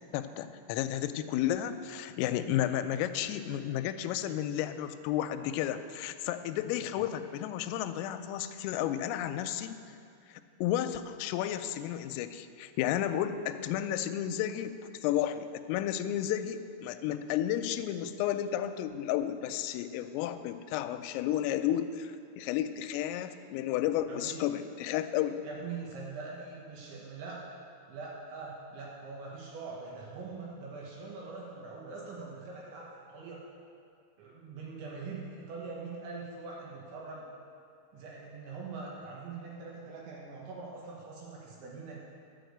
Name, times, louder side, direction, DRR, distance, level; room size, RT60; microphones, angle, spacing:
voice 1, 0.1-9.8 10.6-14.7 15.0-25.4, left 11 dB, 90° left, 10 dB, 3.2 m, -32 dB
voice 2, 24.1-24.4 25.4-27.4 27.9-33.4 34.2-37.3 37.9-42.0, right 4 dB, 70° right, -4 dB, 3.4 m, -43 dB
12.0 x 6.5 x 7.9 m, 2.4 s
omnidirectional pair, 5.9 m